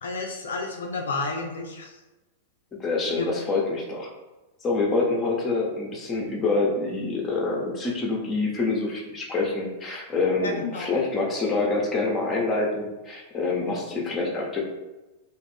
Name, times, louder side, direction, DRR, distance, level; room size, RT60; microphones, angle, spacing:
voice 1, 0.0-2.0 3.2-3.3 10.4-10.9, left 3 dB, 75° left, 1 dB, 0.4 m, -31 dB
voice 2, 2.8-4.1 4.6-14.6, left 3 dB, 20° left, -1 dB, 0.8 m, -26 dB
2.6 x 2.4 x 3.4 m, 1.1 s
figure-of-eight pair, 100°, 0 cm